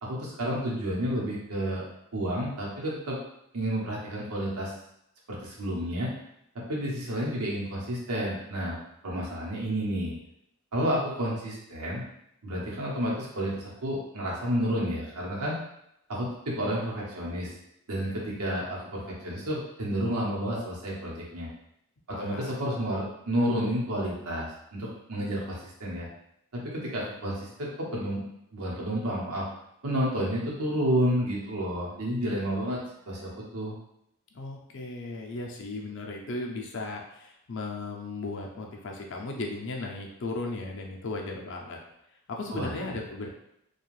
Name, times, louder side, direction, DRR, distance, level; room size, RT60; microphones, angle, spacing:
voice 1, 0.0-1.9 2.1-3.2 3.5-4.7 5.3-6.1 6.5-8.8 9.0-10.1 10.7-12.1 12.4-15.6 16.1-17.5 17.9-21.5 22.2-26.1 26.5-28.2 28.5-29.5 29.8-33.7 42.5-42.7, equal, 90° right, -4 dB, 0.9 m, -30 dB
voice 2, 22.1-22.6 34.3-41.8 42.3-43.3, left 2 dB, 55° left, 1 dB, 0.5 m, -36 dB
2.5 x 2.3 x 3.1 m, 0.79 s
head